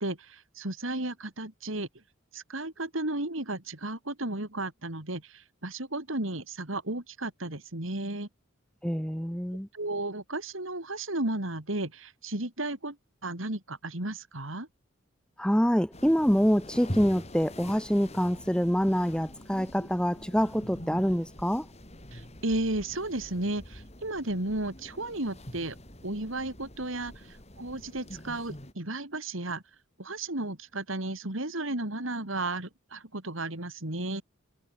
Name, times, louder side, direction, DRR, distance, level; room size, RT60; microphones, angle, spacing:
voice 1, 0.0-1.9 2.3-8.3 9.7-13.0 13.2-14.7 22.1-25.8 26.0-29.6 30.0-34.2, right 2 dB, 70° right, 3.5 m, -34 dB
voice 2, 8.8-9.7 15.4-21.7, equal, 5° left, 2.6 m, -26 dB
sound 1, 15.9-28.7, left 1 dB, 30° left, 5.4 m, -44 dB
head